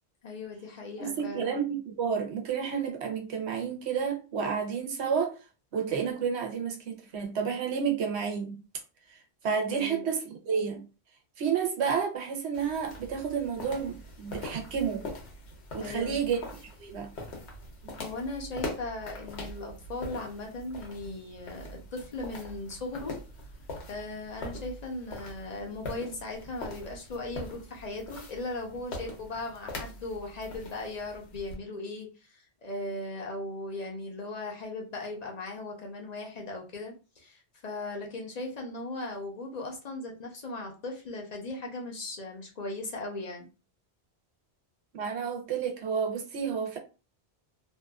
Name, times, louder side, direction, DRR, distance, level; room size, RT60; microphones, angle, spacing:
voice 1, 0.2-1.5 9.7-10.1 15.8-16.2 18.0-23.2 23.9-43.5, left 2 dB, 45° left, 0.7 m, -38 dB
voice 2, 1.0-5.4 5.7-8.5 9.1-10.8 11.4-15.1 15.7-16.4 16.8-17.1 17.8-17.9 45.0-46.8, right 6 dB, 80° right, 1.0 m, -30 dB
sound 1, 12.5-31.6, left 2 dB, 85° left, 1.1 m, -43 dB
2.7 x 2.3 x 2.2 m
omnidirectional pair, 1.1 m